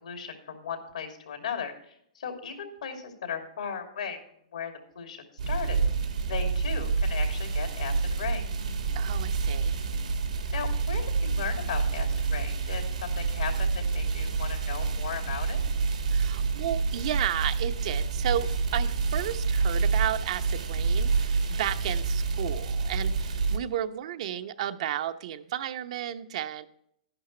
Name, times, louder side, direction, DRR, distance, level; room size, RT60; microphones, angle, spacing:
voice 1, 0.0-4.2 4.5-5.8 6.3-8.4 10.5-15.6, left 7 dB, 85° left, 4 dB, 2.7 m, -37 dB
sound 1, 5.4-23.6, right 4 dB, 85° right, 2.2 m, -28 dB
voice 2, 8.9-9.8 16.1-26.7, right 11 dB, 60° right, 9 dB, 0.8 m, -33 dB
11.5 x 11.0 x 3.3 m, 0.71 s
hypercardioid pair, 140°, 4 cm